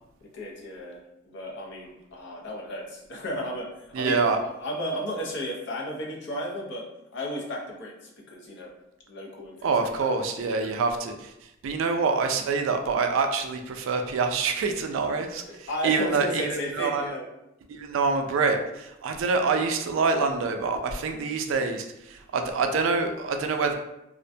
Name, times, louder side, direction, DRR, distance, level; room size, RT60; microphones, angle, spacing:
voice 1, 0.3-1.0 1.2-3.7 4.0-6.9 7.1-8.7 9.1-10.2 10.5-10.7 15.5-17.2, equal, 60° left, -1 dB, 0.6 m, -34 dB
voice 2, 3.9-4.4 9.6-11.3 11.6-17.1 17.7-23.7, right 4 dB, 70° right, 5 dB, 0.3 m, -26 dB
2.4 x 2.1 x 2.5 m, 0.86 s
head